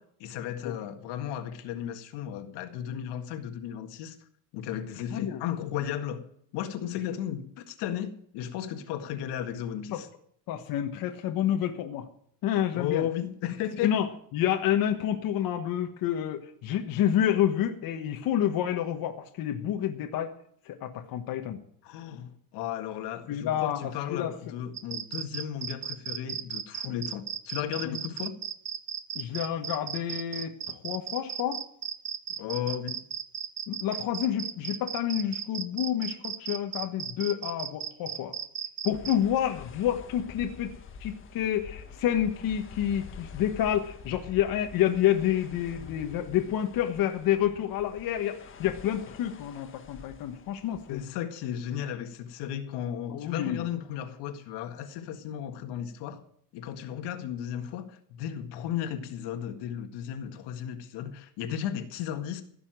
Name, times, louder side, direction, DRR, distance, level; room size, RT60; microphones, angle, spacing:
voice 1, 0.0-4.2 4.5-6.3 6.5-10.1 12.7-14.0 21.8-28.4 32.4-33.0 50.9-56.2 56.5-62.4, left 10 dB, 80° left, 1.9 m, -35 dB
voice 2, 5.1-5.4 9.9-10.0 10.5-12.1 12.4-13.0 13.8-20.3 20.6-21.6 23.3-24.3 26.8-27.0 27.8-28.0 29.1-31.6 33.7-38.3 38.8-40.7 41.0-51.0 53.1-53.7, left 10 dB, 55° left, 1.4 m, -29 dB
sound 1, 24.7-39.2, right 8 dB, 30° right, 0.8 m, -36 dB
sound 2, 38.9-51.1, left 6 dB, 30° left, 1.4 m, -47 dB
16.0 x 7.0 x 9.3 m
cardioid pair, 160°, 41 cm